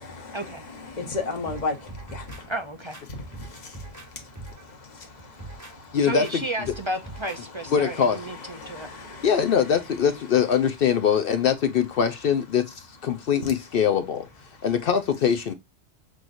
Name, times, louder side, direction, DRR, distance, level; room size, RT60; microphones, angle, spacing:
voice 1, 0.2-2.5 3.1-6.0 8.5-9.3, left 3 dB, 40° left, 1.3 m, -36 dB
sound 1, 1.5-2.4 2.9-4.1 4.4-4.7 5.2-5.7 6.2-6.4 6.6-7.4 7.8-7.9, right 2 dB, 15° right, 1.2 m, -42 dB
voice 2, 2.5-3.0 6.0-8.9, right 1 dB, 30° right, 0.6 m, -32 dB
voice 3, 5.9-6.4 7.7-8.2 9.2-14.3 14.6-15.5, left 7 dB, 60° left, 0.7 m, -22 dB
6.2 x 3.0 x 2.5 m
omnidirectional pair, 1.2 m